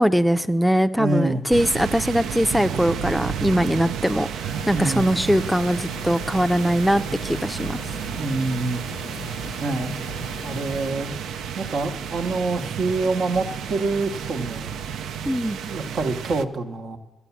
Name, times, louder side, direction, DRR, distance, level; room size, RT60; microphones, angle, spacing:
voice 1, 0.0-7.8 15.3-15.6, equal, ahead, 9 dB, 0.5 m, -21 dB
voice 2, 1.0-1.4 4.7-5.1 8.2-8.8 9.6-9.9 10.4-11.1 11.6-14.7 15.7-17.0, right 3 dB, 65° right, 4 dB, 1.0 m, -26 dB
sound 1, 1.5-16.4, right 8 dB, 85° right, 0.4 m, -32 dB
sound 2, 4.4-10.9, left 6 dB, 85° left, 0.7 m, -40 dB
12.0 x 8.3 x 7.0 m, 1.1 s
supercardioid pair, 50°, 0 cm